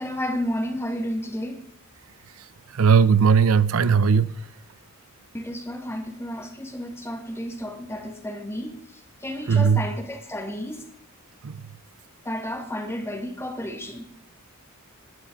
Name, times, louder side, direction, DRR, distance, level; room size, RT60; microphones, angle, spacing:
voice 1, 0.0-1.6 5.3-8.8 9.2-10.8 12.2-14.1, equal, 10° left, 2.1 m, -32 dB
voice 2, 2.7-4.4 9.5-9.8 11.4-11.5, right 6 dB, 75° right, 0.6 m, -18 dB
20.0 x 10.5 x 3.9 m
head